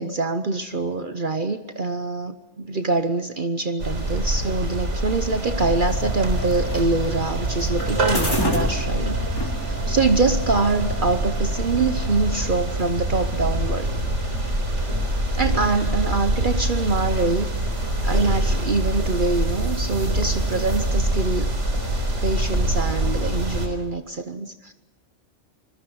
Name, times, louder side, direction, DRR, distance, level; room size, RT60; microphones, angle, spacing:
voice 1, 0.0-13.9 15.3-17.5 18.0-21.5 22.2-24.7, right 3 dB, 45° right, 9 dB, 1.1 m, -24 dB
sound 1, 3.8-23.7, right 1 dB, 75° right, 4.2 m, -25 dB
sound 2, 5.4-12.2, right 1 dB, 20° left, 3.6 m, -31 dB
26.0 x 21.0 x 6.3 m, 1.1 s
omnidirectional pair, 1.2 m